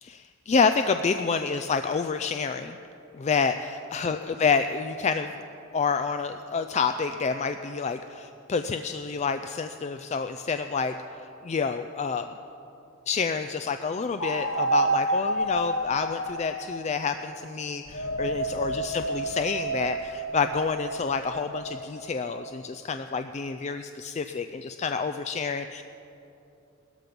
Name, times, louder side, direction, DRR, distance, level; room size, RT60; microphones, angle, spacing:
voice 1, 0.0-2.8 3.1-5.3 5.7-10.9 11.4-12.3 13.1-25.8, left 5 dB, 35° left, 8 dB, 0.3 m, -28 dB
sound 1, 14.2-17.3 17.9-22.5, right 1 dB, 70° left, 1.1 m, -30 dB
18.0 x 13.5 x 5.3 m, 2.8 s
head